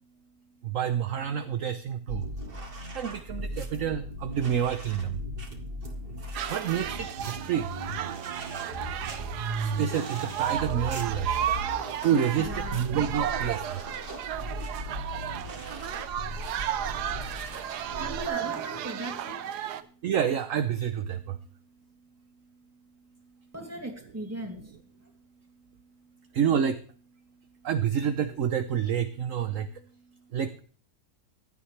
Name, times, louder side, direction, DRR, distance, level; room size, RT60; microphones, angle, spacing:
voice 1, 0.6-2.3 2.9-5.2 6.5-7.7 9.6-11.4 12.0-13.8 20.0-21.4 26.3-26.8 27.6-29.8 30.3-30.6, right 8 dB, 60° right, 11 dB, 1.0 m, -28 dB
sound 1, 2.1-18.3, right 1 dB, 35° right, 1.9 m, -37 dB
sound 2, 6.3-19.8, right 11 dB, 80° right, 1.3 m, -34 dB
voice 2, 12.4-13.0 17.9-19.8 23.5-24.8, right 1 dB, 10° right, 2 dB, 2.7 m, -39 dB
16.0 x 12.0 x 3.3 m, 0.41 s
omnidirectional pair, 1.7 m